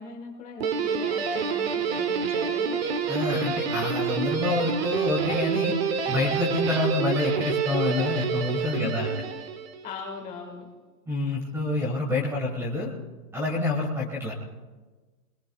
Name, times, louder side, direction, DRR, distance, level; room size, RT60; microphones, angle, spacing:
voice 1, 0.0-2.8 8.8-9.2 9.8-10.7, left 5 dB, 15° left, 0 dB, 1.5 m, -39 dB
Guitar, 0.6-9.9, right 6 dB, 40° right, 0.9 m, -28 dB
voice 2, 3.1-5.7 6.1-9.1 11.1-12.9 13.3-14.3, left 2 dB, 5° right, -1 dB, 1.5 m, -27 dB
25.0 x 20.5 x 2.3 m, 1.3 s
hypercardioid pair, 165°, 47 cm